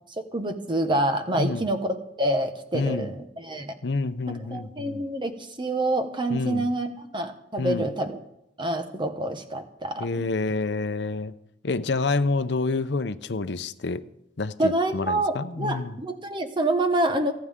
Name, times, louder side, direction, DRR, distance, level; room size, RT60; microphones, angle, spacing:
voice 1, 0.2-3.7 4.3-8.2 8.6-10.3 14.6-17.3, right 1 dB, 25° right, 1.3 m, -27 dB
voice 2, 1.3-1.6 2.7-3.1 3.8-5.0 6.3-6.7 7.6-7.9 10.0-11.3 11.6-14.0 14.4-16.0, left 3 dB, 65° left, 0.7 m, -28 dB
28.5 x 9.5 x 3.7 m
head